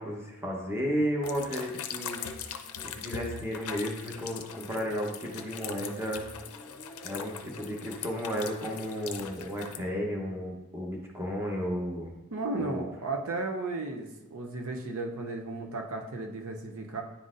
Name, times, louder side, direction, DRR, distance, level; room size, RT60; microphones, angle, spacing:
voice 1, 0.0-2.2 2.8-6.2 7.0-12.1 12.6-12.8, equal, 10° right, -1 dB, 0.9 m, -33 dB
sound 1, 1.2-9.8, left 6 dB, 80° left, 0.5 m, -41 dB
voice 2, 12.3-17.0, right 2 dB, 65° right, 3 dB, 0.6 m, -34 dB
9.9 x 3.9 x 2.5 m, 1.0 s
head